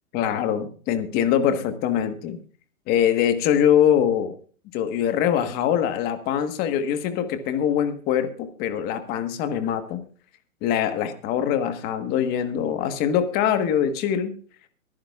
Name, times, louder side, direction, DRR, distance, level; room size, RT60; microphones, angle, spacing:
voice 1, 0.1-2.4 2.9-4.3 4.7-10.0 10.6-14.4, left 9 dB, 20° left, 9 dB, 1.4 m, -23 dB
24.0 x 10.0 x 2.4 m, 0.43 s
hypercardioid pair, 150°, 41 cm